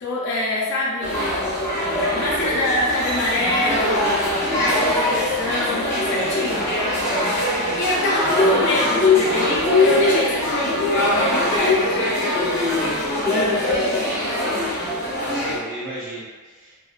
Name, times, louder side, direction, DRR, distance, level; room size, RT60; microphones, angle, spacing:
voice 1, 0.0-1.4 2.0-6.7 7.8-12.3, left 1 dB, 55° left, -5 dB, 0.5 m, -25 dB
sound 1, 1.0-15.6, left 2 dB, 15° left, 0.7 m, -22 dB
voice 2, 9.2-10.2 15.3-16.8, right 1 dB, 55° right, -12 dB, 0.7 m, -36 dB
2.7 x 2.1 x 2.3 m, 1.4 s
head